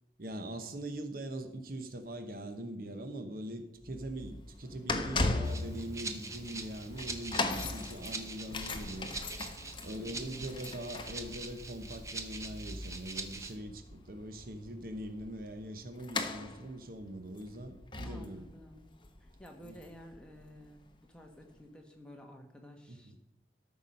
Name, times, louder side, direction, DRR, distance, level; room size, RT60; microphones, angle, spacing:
voice 1, 0.2-9.1 9.8-18.4 19.6-19.8 22.9-23.2, right 1 dB, 55° right, 8 dB, 1.0 m, -42 dB
sound 1, 3.8-20.8 21.4-21.5, left 2 dB, 25° left, 0.9 m, -39 dB
Rattle (instrument), 5.4-13.5, right 3 dB, 15° right, 0.8 m, -44 dB
voice 2, 10.0-10.5 18.0-18.9 19.2-23.2, equal, 5° left, 2 dB, 1.4 m, -52 dB
13.5 x 5.9 x 5.4 m, 0.83 s
head